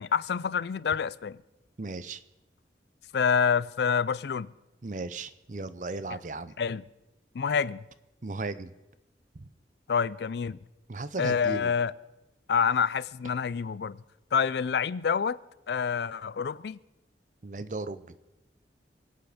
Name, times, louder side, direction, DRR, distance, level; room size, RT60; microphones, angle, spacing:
voice 1, 0.0-1.4 3.1-4.5 6.6-6.8 7.3-7.8 9.9-10.6 11.2-11.9 12.5-14.0 14.3-15.4 15.7-16.8, left 6 dB, 70° left, 0.4 m, -27 dB
voice 2, 1.8-2.2 4.8-6.5 8.2-8.7 9.4-9.5 10.9-11.7 17.4-18.0, right 3 dB, 45° right, 0.6 m, -36 dB
24.0 x 8.4 x 5.0 m
head